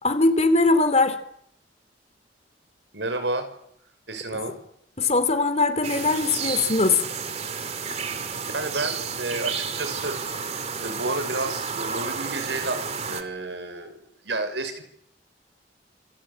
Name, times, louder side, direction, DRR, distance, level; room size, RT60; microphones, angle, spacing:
voice 1, 0.0-1.2 4.3-4.4 5.0-7.0, left 3 dB, 35° left, 11 dB, 3.0 m, -21 dB
voice 2, 2.9-3.5 4.1-4.6 8.5-10.2 10.8-14.0 14.2-14.8, right 2 dB, 85° right, 9 dB, 5.9 m, -30 dB
sound 1, 5.8-13.2, right 5 dB, 35° right, 2.4 m, -31 dB
27.0 x 23.0 x 8.7 m, 0.71 s
head